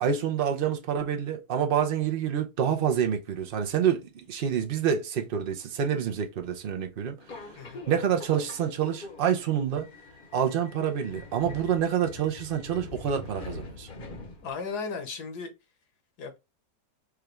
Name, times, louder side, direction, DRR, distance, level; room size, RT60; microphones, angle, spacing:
voice 1, 0.0-7.2 7.9-9.9 10.3-13.9, right 8 dB, 70° right, 0.5 m, -27 dB
Subway metro underground, 7.2-14.7, left 3 dB, 45° left, 0.7 m, -44 dB
voice 2, 14.4-15.5 16.2-16.4, left 5 dB, 75° left, 1.4 m, -35 dB
4.8 x 2.3 x 3.1 m
omnidirectional pair, 1.8 m